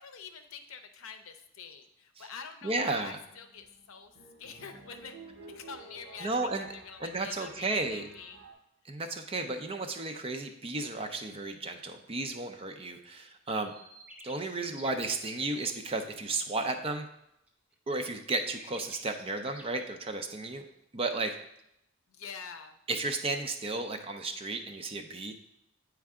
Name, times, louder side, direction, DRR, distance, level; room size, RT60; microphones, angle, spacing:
voice 1, 0.0-4.1 4.4-5.2 5.5-8.4 22.1-22.8, left 6 dB, 65° left, 8 dB, 0.7 m, -46 dB
voice 2, 2.6-3.2 6.2-6.7 7.0-8.1 8.9-13.7 14.2-17.1 17.9-20.7 20.9-21.4 22.9-25.3, right 2 dB, 25° right, 6 dB, 0.5 m, -33 dB
sound 1, 2.7-8.5, right 3 dB, 70° right, 2.8 m, -52 dB
sound 2, 13.7-15.6 17.5-17.6 17.9-19.8, right 1 dB, 5° right, 1.0 m, -51 dB
8.6 x 4.6 x 3.6 m, 0.80 s
head